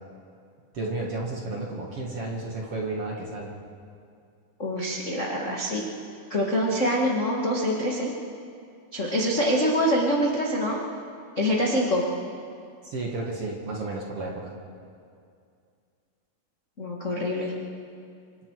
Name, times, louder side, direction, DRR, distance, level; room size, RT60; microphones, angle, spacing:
voice 1, 0.7-3.5 12.8-14.5, right 2 dB, 45° right, -1 dB, 2.0 m, -32 dB
voice 2, 4.6-5.8 6.3-8.1 8.9-10.8 11.4-12.1 16.8-17.5, equal, 65° left, -3 dB, 0.7 m, -25 dB
27.0 x 26.0 x 4.8 m, 2.4 s
omnidirectional pair, 5.0 m